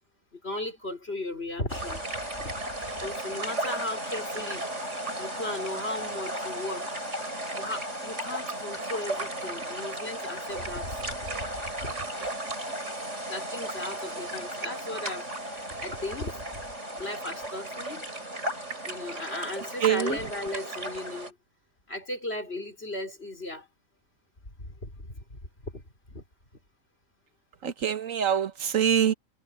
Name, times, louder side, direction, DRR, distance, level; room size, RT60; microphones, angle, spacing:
voice 1, 0.3-2.1 2.4-2.6 3.0-4.6 5.2-7.0 7.6-12.1 13.3-16.5 17.0-18.1 18.8-21.4 21.9-23.7 24.6-25.8 26.1-26.2, left 2 dB, 50° left, 5.2 m, -36 dB
sound 1, 1.7-21.3, right 1 dB, 60° right, 6.4 m, -35 dB
voice 2, 19.8-20.2 27.6-29.1, right 9 dB, 80° right, 1.6 m, -25 dB
omnidirectional pair, 1.4 m